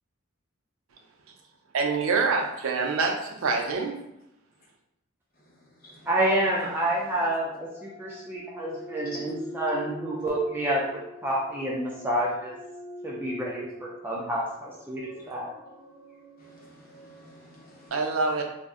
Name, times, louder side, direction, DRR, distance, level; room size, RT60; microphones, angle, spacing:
voice 1, 1.7-4.0 17.9-18.4, right 4 dB, 75° right, 2 dB, 0.5 m, -26 dB
sound 1, 6.0-17.9, left 1 dB, 85° left, 0.6 m, -44 dB
voice 2, 6.1-12.6 13.0-15.5, right 1 dB, 10° right, -5 dB, 0.3 m, -29 dB
voice 3, 16.4-17.9, left 2 dB, 40° left, -4 dB, 0.8 m, -49 dB
2.5 x 2.0 x 3.5 m, 0.83 s
head